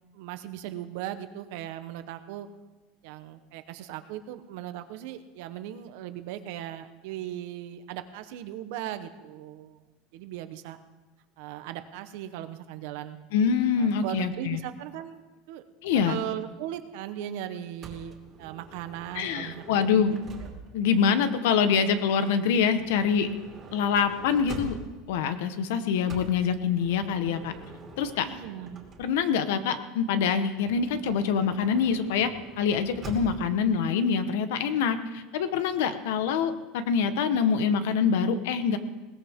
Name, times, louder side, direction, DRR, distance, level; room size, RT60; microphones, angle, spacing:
voice 1, 0.1-2.5 3.0-9.8 10.1-10.8 11.4-13.2 13.8-15.2 15.5-15.6 16.0-19.9 20.8-20.9 28.2-28.8, right 12 dB, 60° right, 10 dB, 1.1 m, -38 dB
voice 2, 13.3-14.6 15.8-16.2 19.1-20.2 20.7-23.3 23.7-24.8 25.1-27.5 28.0-28.3 29.0-32.3 32.6-38.8, left 6 dB, 75° left, 10 dB, 1.2 m, -25 dB
Motor vehicle (road) / Sliding door, 17.8-20.9 21.9-25.1 26.1-29.4 30.6-33.6, right 3 dB, 20° right, 2.7 m, -45 dB
20.5 x 18.5 x 3.7 m, 1.2 s
supercardioid pair, 175°, 0 cm